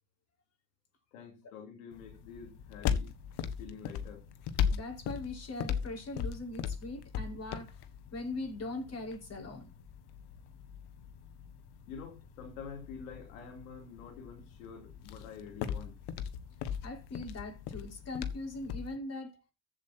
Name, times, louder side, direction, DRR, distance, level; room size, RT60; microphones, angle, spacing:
voice 1, 1.1-3.1 3.6-4.3 11.9-16.0, left 6 dB, 90° left, 3.2 m, -47 dB
sound 1, 1.9-19.0, left 8 dB, 70° left, 1.6 m, -39 dB
voice 2, 4.7-7.8 8.1-9.7 16.8-19.4, left 2 dB, 40° left, 5.8 m, -40 dB
15.0 x 7.7 x 2.8 m
hypercardioid pair, 65°, 41 cm